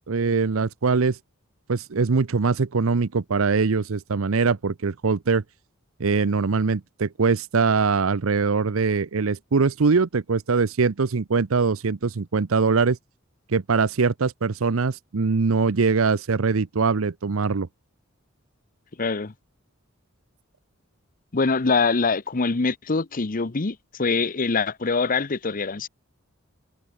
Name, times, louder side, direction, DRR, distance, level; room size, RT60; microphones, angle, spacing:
voice 1, 0.1-1.2 1.7-5.4 6.0-13.0 13.5-17.7, right 4 dB, 85° right, 0.7 m, -22 dB
voice 2, 19.0-19.3 21.3-25.9, left 4 dB, 40° left, 0.9 m, -24 dB
head